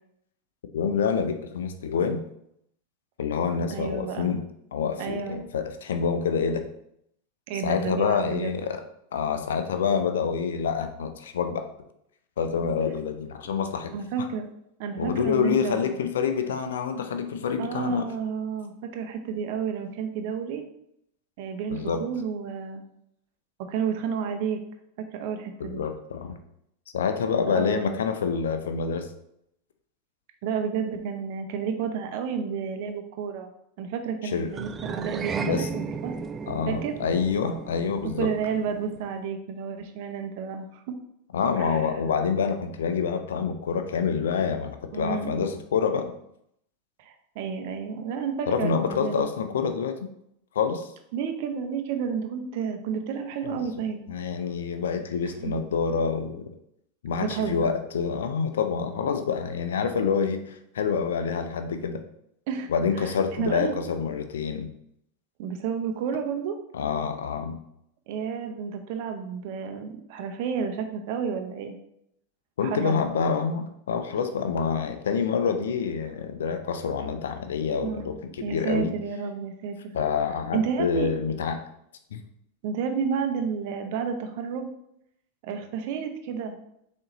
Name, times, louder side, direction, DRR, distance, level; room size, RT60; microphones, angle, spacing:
voice 1, 0.7-2.2 3.2-4.4 4.7-6.6 7.6-8.8 9.1-11.6 12.4-13.9 15.0-18.1 21.7-22.0 25.6-26.4 26.9-29.1 34.3-34.5 35.4-35.7 36.5-38.3 41.3-46.1 48.5-50.1 50.5-50.9 53.5-53.6 54.1-56.4 57.0-62.0 62.7-64.7 66.7-67.6 72.6-78.9 79.9-81.6 82.1-82.2, left 6 dB, 80° left, 7 dB, 0.5 m, -27 dB
voice 2, 3.7-4.3 5.0-5.4 7.5-8.5 13.9-14.5 14.8-15.9 17.6-20.7 21.4-22.8 23.6-24.6 25.1-25.8 27.5-28.0 30.4-33.5 33.8-36.1 36.7-36.9 38.2-40.8 41.6-41.8 44.9-45.5 47.0-49.2 51.1-54.0 55.4-55.5 57.3-57.8 62.5-62.7 63.0-63.1 63.4-63.8 65.4-66.6 68.1-71.8 72.6-73.0 77.8-78.1 78.4-79.9 80.5-81.1 82.6-84.7 85.4-86.6, right 6 dB, 60° right, 5 dB, 0.7 m, -31 dB
sound 1, 34.5-39.1, right 6 dB, 25° right, 0.3 m, -35 dB
4.2 x 3.9 x 3.0 m, 0.75 s
hypercardioid pair, 100°, 0 cm